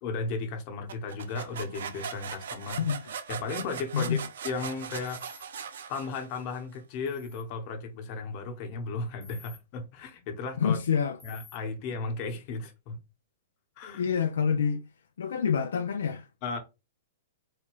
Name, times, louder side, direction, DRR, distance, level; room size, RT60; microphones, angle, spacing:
voice 1, 0.0-2.9 3.3-5.2 5.9-10.8 11.2-13.0 13.8-14.1 16.4-16.6, left 4 dB, 45° left, 1.1 m, -35 dB
sound 1, 0.9-6.6, right 7 dB, 75° right, 0.5 m, -40 dB
sound 2, 5.1-5.4 7.1-7.4 9.2-9.6 11.2-11.6, left 5 dB, 5° left, 0.7 m, -52 dB
voice 2, 10.6-11.2 13.9-14.8 15.2-16.3, left 7 dB, 80° left, 0.4 m, -27 dB
4.2 x 2.3 x 3.0 m
hypercardioid pair, 130°, 0 cm